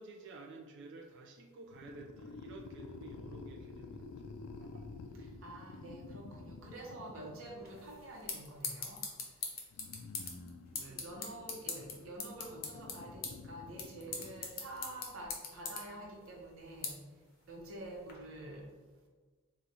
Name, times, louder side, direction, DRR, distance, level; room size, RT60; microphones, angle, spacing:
voice 1, 0.0-4.2 4.6-4.9 10.7-11.1, right 3 dB, 55° right, 1 dB, 0.4 m, -52 dB
sound 1, 1.7-7.9 9.7-15.0, left 3 dB, 80° left, 0.3 m, -50 dB
voice 2, 5.1-9.0 10.8-16.9 17.5-18.7, right 1 dB, 75° right, -1 dB, 0.8 m, -47 dB
sound 2, 7.7-18.1, left 5 dB, 45° left, 0.7 m, -44 dB
3.9 x 2.4 x 4.2 m, 1.3 s
head